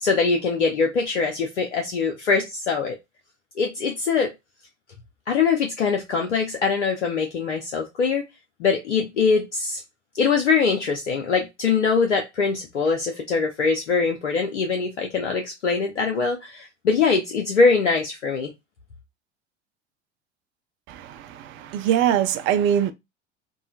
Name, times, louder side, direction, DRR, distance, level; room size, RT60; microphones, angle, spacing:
voice 1, 0.0-3.0 3.6-4.3 5.3-8.3 8.6-9.8 10.1-18.5, left 5 dB, 80° left, 0.6 m, -23 dB
voice 2, 20.9-22.9, right 10 dB, 35° right, 0.4 m, -23 dB
3.8 x 2.0 x 2.3 m
figure-of-eight pair, 75°, 35 cm